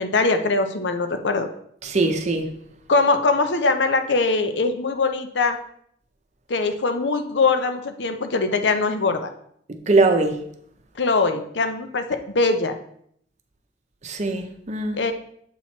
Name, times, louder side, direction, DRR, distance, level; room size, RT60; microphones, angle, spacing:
voice 1, 0.0-1.5 2.9-5.6 6.5-9.3 11.0-12.8 14.9-15.1, left 3 dB, 70° left, 7 dB, 0.6 m, -22 dB
voice 2, 1.8-2.5 9.9-10.4 14.0-15.0, right 3 dB, 40° right, 5 dB, 0.7 m, -21 dB
7.2 x 3.0 x 4.3 m, 0.68 s
head